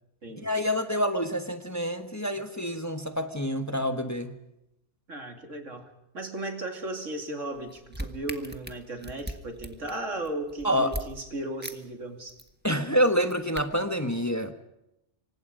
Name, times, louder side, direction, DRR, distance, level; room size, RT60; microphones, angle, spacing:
voice 1, 0.4-4.3 10.6-10.9 12.6-14.5, equal, 15° left, 7 dB, 1.2 m, -27 dB
voice 2, 5.1-5.9 6.1-12.4, right 2 dB, 85° right, 5 dB, 3.0 m, -36 dB
sound 1, 7.5-11.1 11.6-11.7 12.0-12.5 13.1-13.6, right 1 dB, 10° right, 1.5 m, -38 dB
27.0 x 24.5 x 5.1 m, 0.86 s
omnidirectional pair, 1.3 m